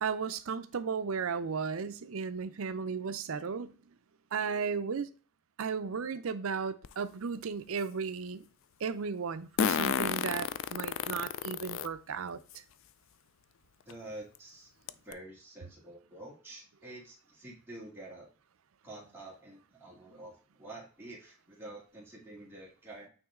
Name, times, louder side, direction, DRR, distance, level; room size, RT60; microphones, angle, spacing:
voice 1, 0.0-3.7 4.3-5.1 5.6-8.5 8.8-12.6, right 5 dB, 70° right, 0.5 m, -35 dB
Fart, 6.8-6.9 9.6-11.9 12.5-12.6 13.9-14.0 14.4-14.5 14.9-15.1, left 7 dB, 60° left, 0.3 m, -31 dB
voice 2, 13.9-18.3 18.8-23.1, right 2 dB, 10° right, 2.3 m, -48 dB
9.0 x 3.1 x 3.6 m
head